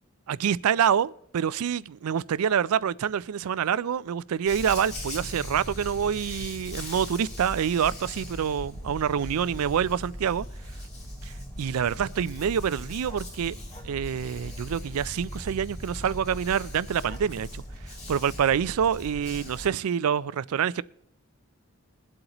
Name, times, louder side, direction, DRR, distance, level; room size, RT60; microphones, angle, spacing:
voice 1, 0.3-10.5 11.2-13.6 13.8-17.6 18.1-20.8, right 8 dB, 90° right, 0.4 m, -26 dB
Dog, 4.5-19.7, left 1 dB, 30° left, 3.0 m, -39 dB
21.5 x 7.8 x 3.0 m
head